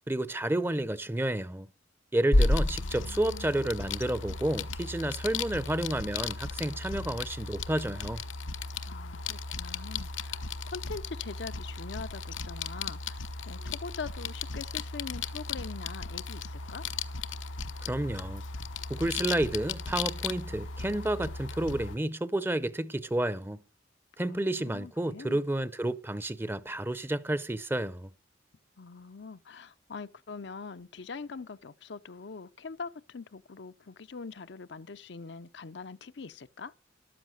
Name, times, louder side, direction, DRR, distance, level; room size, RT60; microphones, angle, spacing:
voice 1, 0.1-1.7 2.1-8.2 17.8-18.4 18.9-23.6 24.2-28.1, right 1 dB, 10° right, 0.7 m, -30 dB
sound 1, 2.3-22.0, left 3 dB, 90° left, 1.0 m, -34 dB
voice 2, 2.5-3.7 8.9-16.9 24.2-25.4 28.8-36.7, left 4 dB, 65° left, 0.6 m, -43 dB
13.5 x 12.5 x 6.4 m
head